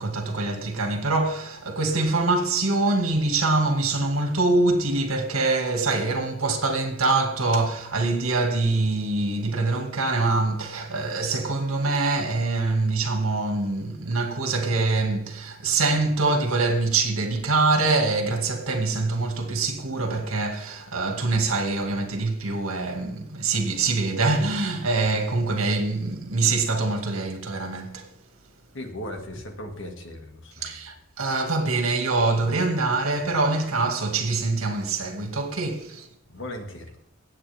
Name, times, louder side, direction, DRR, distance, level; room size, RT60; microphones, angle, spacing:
voice 1, 0.0-28.1 30.6-36.1, right 3 dB, 80° right, 2.2 m, -24 dB
voice 2, 28.7-30.7 36.3-36.9, left 1 dB, 60° left, 2.1 m, -37 dB
18.0 x 8.5 x 3.6 m
head